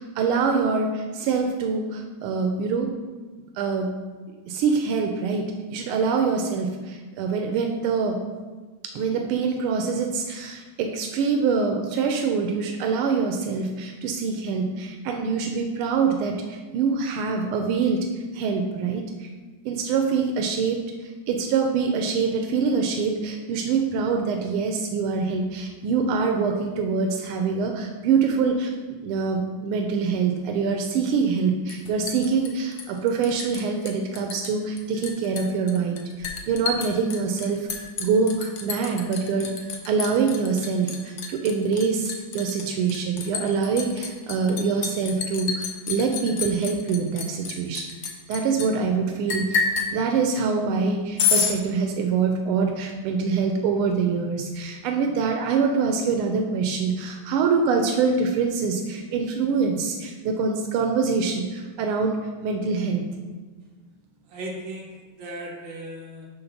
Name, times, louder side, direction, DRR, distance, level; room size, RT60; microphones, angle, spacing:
voice 1, 0.0-2.9 3.6-3.9 4.5-8.2 8.9-18.1 18.3-19.3 19.6-39.5 39.8-47.9 48.3-49.6 49.9-63.1, right 5 dB, 90° right, 3 dB, 1.5 m, -25 dB
Liquid, 31.7-33.6 33.9-34.5 34.8-48.7 49.3-49.9 51.2-51.5, left 6 dB, 65° left, 1.1 m, -29 dB
voice 2, 64.3-66.3, right 1 dB, 65° right, -2 dB, 1.9 m, -37 dB
5.5 x 3.8 x 5.7 m, 1.4 s
omnidirectional pair, 2.3 m